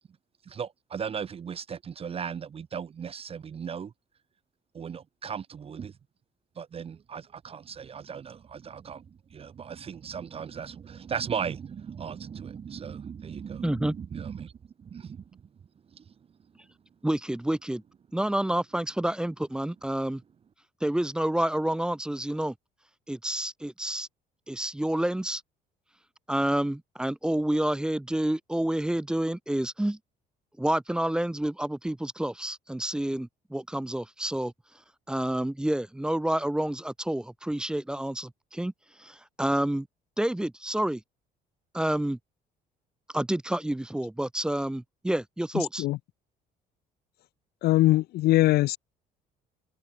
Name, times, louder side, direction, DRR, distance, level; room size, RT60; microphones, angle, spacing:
voice 1, 0.4-3.9 4.7-6.0 6.6-14.5 14.8-15.5 15.9-16.1, right 7 dB, 35° right, 0.9 m, -37 dB
voice 2, 13.6-13.9 17.0-17.8 18.1-20.2 20.8-22.5 23.1-24.1 24.5-25.4 26.3-30.0 30.6-34.5 35.1-38.7 39.0-39.9 40.2-41.0 41.7-42.2 43.1-45.9, right 1 dB, 5° right, 0.3 m, -29 dB
voice 3, 47.6-48.8, left 17 dB, 70° left, 0.5 m, -21 dB
cardioid pair, 110°, 17 cm